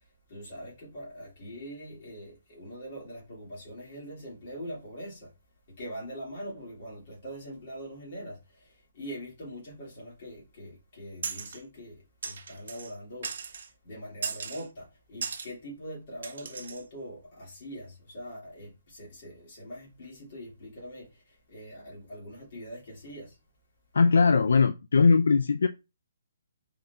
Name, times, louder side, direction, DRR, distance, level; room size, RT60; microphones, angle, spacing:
voice 1, 0.3-5.3 5.8-23.4, equal, 30° left, 2.0 m, -43 dB
sound 1, 11.2-11.6 12.2-12.9 13.2-13.7 14.2-14.6 15.2-15.5 16.2-16.8, right 6 dB, 45° right, 0.7 m, -37 dB
voice 2, 23.9-25.7, left 4 dB, 65° left, 0.3 m, -20 dB
5.2 x 3.6 x 2.3 m
hypercardioid pair, 180°, 0 cm